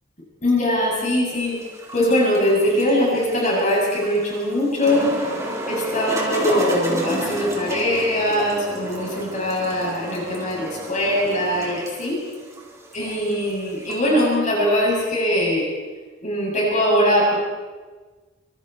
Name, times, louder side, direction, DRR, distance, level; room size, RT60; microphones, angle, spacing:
voice 1, 0.4-1.6 1.9-5.1 5.7-12.2 12.9-15.7 16.2-17.4, left 1 dB, 40° left, -4 dB, 7.9 m, -21 dB
sound 1, 1.3-14.4, right 1 dB, 15° right, 4.4 m, -31 dB
27.5 x 27.0 x 4.6 m, 1.3 s
head